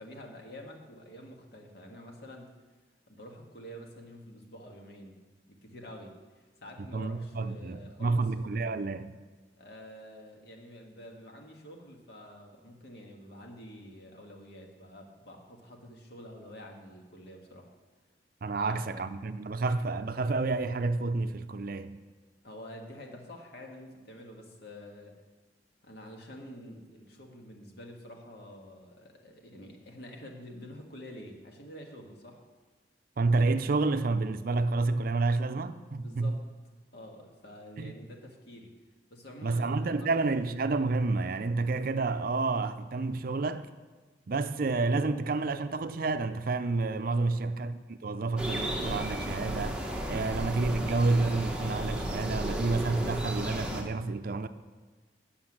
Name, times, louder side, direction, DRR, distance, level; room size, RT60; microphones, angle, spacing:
voice 1, 0.0-2.5 3.1-5.2 5.5-8.2 9.6-17.7 18.6-18.8 22.4-25.1 25.8-32.4 35.9-36.4 36.9-38.7 39.1-40.2 47.2-47.4, equal, 60° left, 1.7 m, -48 dB
voice 2, 6.9-9.1 18.4-22.0 33.2-36.3 37.8-37.9 39.4-43.7 44.3-54.5, right 3 dB, 50° right, 0.5 m, -29 dB
sound 1, 48.4-53.8, equal, 5° right, 1.1 m, -34 dB
9.6 x 7.0 x 7.3 m
head